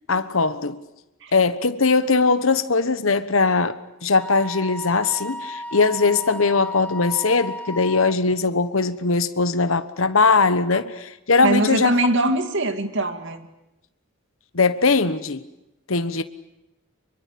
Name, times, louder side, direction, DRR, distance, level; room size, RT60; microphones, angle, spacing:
voice 1, 0.1-0.8 1.3-3.8 4.0-11.9 14.5-15.4 15.9-16.2, left 4 dB, 70° left, 1.2 m, -20 dB
Wind instrument woodwind instrument, 4.2-8.2, left 1 dB, 5° left, 1.1 m, -34 dB
voice 2, 11.4-13.5, right 2 dB, 60° right, 2.4 m, -22 dB
25.0 x 23.5 x 8.6 m
head